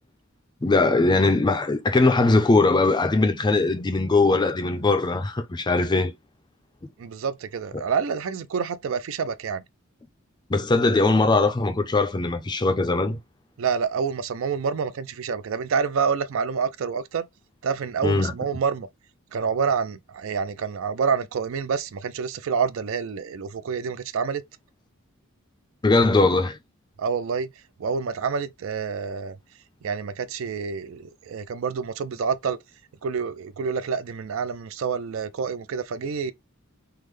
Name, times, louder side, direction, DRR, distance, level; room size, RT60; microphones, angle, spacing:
voice 1, 0.6-6.1 10.5-13.2 18.0-18.3 25.8-26.6, left 3 dB, 20° left, 0.4 m, -20 dB
voice 2, 7.0-9.6 13.6-17.2 17.6-18.9 19.3-24.4 27.0-27.5 27.8-29.4 29.8-32.6 33.0-36.3, right 6 dB, 65° right, 0.4 m, -27 dB
3.6 x 2.1 x 3.0 m
head